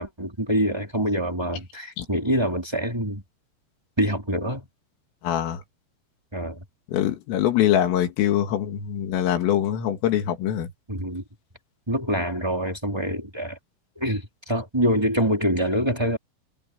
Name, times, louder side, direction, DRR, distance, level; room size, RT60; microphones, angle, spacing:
voice 1, 0.0-3.2 4.0-4.7 6.3-6.6 10.9-11.2 11.9-13.6 13.9-16.2, equal, 10° right, 1.7 m, -25 dB
voice 2, 5.2-5.6 6.9-10.7, left 11 dB, 90° left, 5.0 m, -23 dB
omnidirectional pair, 5.7 m